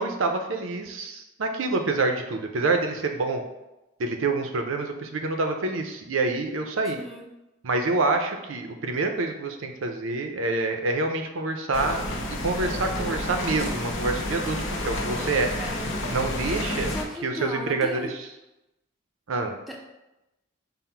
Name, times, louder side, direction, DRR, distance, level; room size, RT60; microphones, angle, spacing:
voice 1, 0.0-3.4 4.0-7.0 7.6-12.0 12.4-14.6 14.8-15.5 16.1-16.9 17.2-18.3 19.3-19.6, right 3 dB, 85° right, 5 dB, 0.6 m, -27 dB
voice 2, 6.9-7.3 12.9-13.3 15.6-16.1 16.7-18.1 19.7-19.8, left 1 dB, ahead, -1 dB, 0.4 m, -37 dB
sound 1, 11.7-17.0, left 1 dB, 75° left, 0.7 m, -30 dB
5.6 x 2.1 x 4.4 m, 0.97 s
head